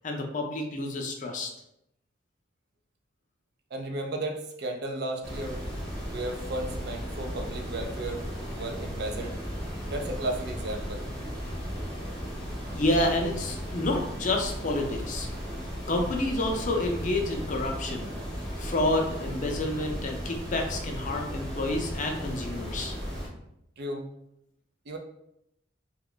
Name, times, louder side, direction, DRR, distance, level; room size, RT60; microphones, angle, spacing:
voice 1, 0.0-1.5 12.7-15.3 15.9-18.1 18.6-22.9, left 2 dB, 40° left, 3 dB, 0.5 m, -29 dB
voice 2, 3.7-5.6 6.1-8.3 8.5-9.3 9.9-11.0 23.8-24.1 24.9-25.0, right 1 dB, 55° right, 3 dB, 0.5 m, -34 dB
sound 1, 5.2-23.3, equal, 5° left, 0.7 m, -36 dB
2.8 x 2.3 x 3.8 m, 0.80 s
head